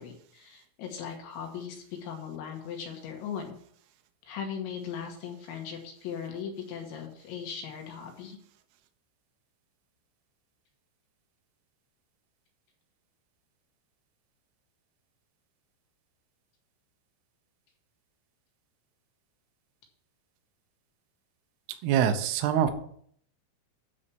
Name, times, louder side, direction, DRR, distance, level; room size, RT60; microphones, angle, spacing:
voice 1, 0.0-3.6 4.3-8.4, left 7 dB, 70° left, 2 dB, 3.3 m, -38 dB
voice 2, 21.8-22.7, right 9 dB, 80° right, 6 dB, 2.4 m, -24 dB
9.9 x 4.2 x 7.0 m, 0.62 s
omnidirectional pair, 5.9 m